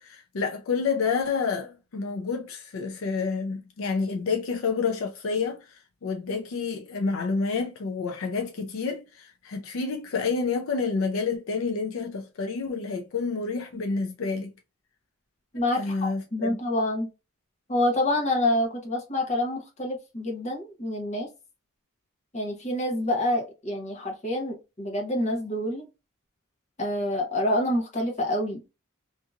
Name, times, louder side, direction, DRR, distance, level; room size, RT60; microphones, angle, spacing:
voice 1, 0.0-14.5 15.7-16.6, left 4 dB, 70° left, 0.4 m, -29 dB
voice 2, 15.5-17.1 17.7-21.3 22.3-25.8 26.8-28.7, left 1 dB, 35° left, 0.9 m, -27 dB
2.7 x 2.5 x 2.4 m
head